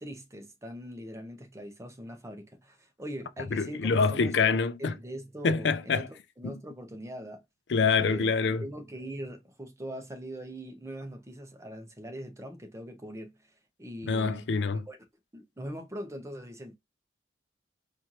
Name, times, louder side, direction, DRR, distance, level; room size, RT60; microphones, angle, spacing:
voice 1, 0.0-7.4 7.8-14.4 14.7-15.0 15.3-16.7, equal, 15° right, 0.8 m, -41 dB
voice 2, 3.5-4.9 5.4-6.0 6.4-6.5 7.7-8.6 14.1-14.9, left 5 dB, 70° left, 0.4 m, -26 dB
4.4 x 2.5 x 2.9 m
head